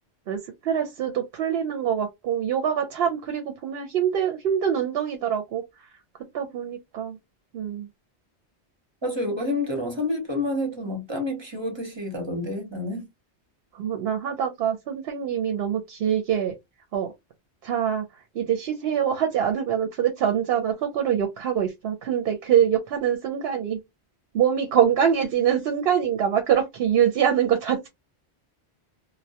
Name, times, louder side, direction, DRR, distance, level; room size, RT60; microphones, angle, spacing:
voice 1, 0.3-5.9 6.3-7.2 7.5-7.9 13.7-16.5 16.9-17.1 17.6-18.1 18.3-23.8 24.3-27.9, right 9 dB, 65° right, 0.7 m, -24 dB
voice 2, 9.0-13.1, left 1 dB, 30° right, 0.7 m, -29 dB
2.2 x 2.1 x 2.7 m
omnidirectional pair, 1.1 m